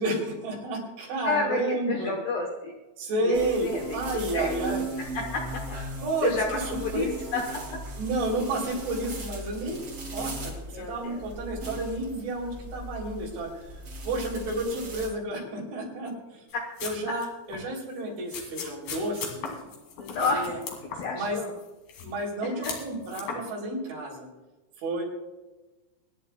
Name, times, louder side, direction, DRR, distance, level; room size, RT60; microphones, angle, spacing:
voice 1, 0.0-2.1 3.0-3.7 3.9-4.8 6.0-6.3 6.7-7.1 8.0-9.8 10.1-13.5 14.1-16.5 16.8-19.4 20.2-20.6 21.1-21.4 22.0-24.3 24.8-25.0, right 2 dB, 75° right, -1 dB, 5.6 m, -31 dB
voice 2, 1.2-2.7 3.2-3.4 3.6-4.0 4.3-5.8 6.2-7.8 10.7-11.2 20.0-20.5 20.9-21.6 22.6-22.7, left 4 dB, 75° left, 2 dB, 2.1 m, -31 dB
sound 1, 3.3-15.1, right 2 dB, 35° right, 2.8 m, -38 dB
sound 2, 16.5-17.3 17.5-17.7 18.3-21.3 21.6-22.2 22.6-23.4, left 5 dB, 55° left, 3.6 m, -37 dB
26.0 x 10.5 x 2.3 m, 1.1 s
omnidirectional pair, 5.4 m